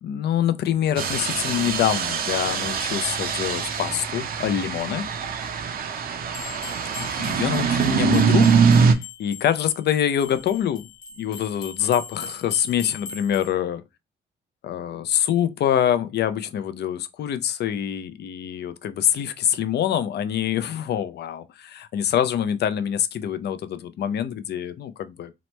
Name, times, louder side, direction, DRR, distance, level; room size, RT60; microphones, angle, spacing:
voice 1, 0.0-5.1 7.0-10.8 11.2-13.8 14.6-25.3, left 10 dB, 55° left, 0.4 m, -25 dB
sound 1, 1.0-8.9, right 6 dB, 50° right, 0.5 m, -23 dB
sound 2, 6.3-13.5, left 5 dB, 90° left, 1.0 m, -41 dB
2.9 x 2.1 x 3.0 m
cardioid pair, 90°, 20 cm